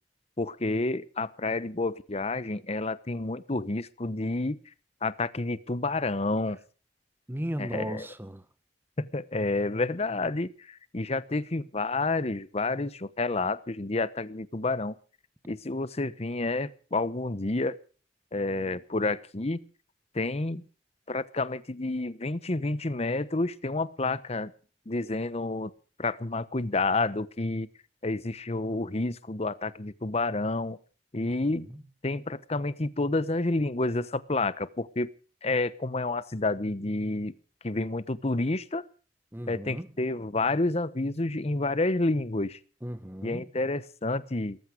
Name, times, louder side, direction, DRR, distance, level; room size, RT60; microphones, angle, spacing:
voice 1, 0.4-4.6 5.0-6.6 7.6-8.1 9.0-15.0 15.5-17.8 18.3-19.6 20.1-20.6 21.1-24.5 24.9-25.7 26.0-27.7 28.0-30.8 31.1-31.7 32.0-35.1 35.4-37.3 37.6-38.8 39.5-42.6 43.2-44.6, left 2 dB, 40° left, 1.0 m, -29 dB
voice 2, 7.3-8.4 31.7-31.8 39.3-39.9 42.8-43.5, equal, 10° right, 1.1 m, -36 dB
18.0 x 14.5 x 5.2 m
head